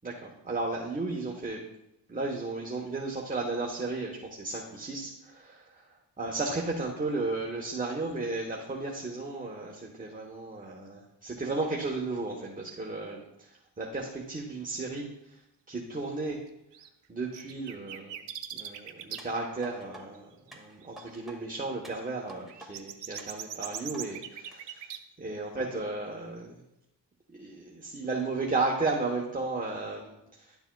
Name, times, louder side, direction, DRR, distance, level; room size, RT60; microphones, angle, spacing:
voice 1, 0.0-1.6 2.1-15.4 15.7-16.4 17.1-18.2 18.5-26.6 27.4-30.6, right 3 dB, 20° right, -1 dB, 1.1 m, -34 dB
sound 1, 16.7-16.9 17.3-19.2 19.6-19.7 20.1-20.2 20.5-20.6 20.8-21.0 22.0-25.0, right 10 dB, 80° right, 0.8 m, -40 dB
sound 2, 19.2-20.0 20.5-21.4 21.8-22.7 23.2-24.0 24.5-24.6, right 1 dB, ahead, 1.8 m, -49 dB
11.5 x 6.9 x 2.3 m, 0.88 s
cardioid pair, 95°, 42 cm